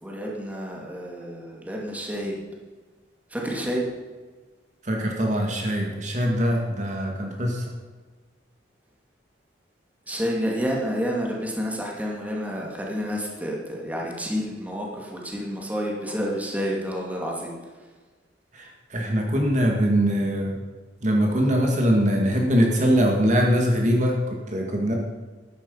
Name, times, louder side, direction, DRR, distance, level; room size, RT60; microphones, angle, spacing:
voice 1, 0.0-2.4 3.3-3.9 10.1-17.5, equal, 10° right, -2 dB, 2.4 m, -29 dB
voice 2, 4.8-7.6 18.5-20.6 21.0-25.0, equal, 40° right, 0 dB, 2.0 m, -22 dB
12.5 x 10.0 x 5.6 m, 1.4 s
head